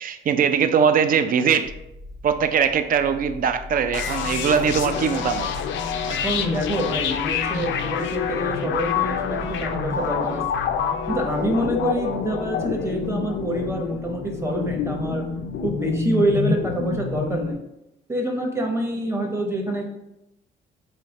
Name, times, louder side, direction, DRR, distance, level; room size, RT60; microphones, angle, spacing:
voice 1, 0.0-1.7 2.2-5.5, right 7 dB, 45° right, 9 dB, 0.4 m, -21 dB
sound 1, 1.6-17.5, left 2 dB, 75° right, 0.7 m, -41 dB
sound 2, 3.9-17.5, left 6 dB, 70° left, 0.4 m, -27 dB
voice 2, 6.2-10.4 11.1-15.2 15.6-17.6 18.1-19.8, right 1 dB, 15° right, 2 dB, 0.9 m, -26 dB
3.3 x 2.8 x 4.0 m, 0.87 s
cardioid pair, 90°, 20 cm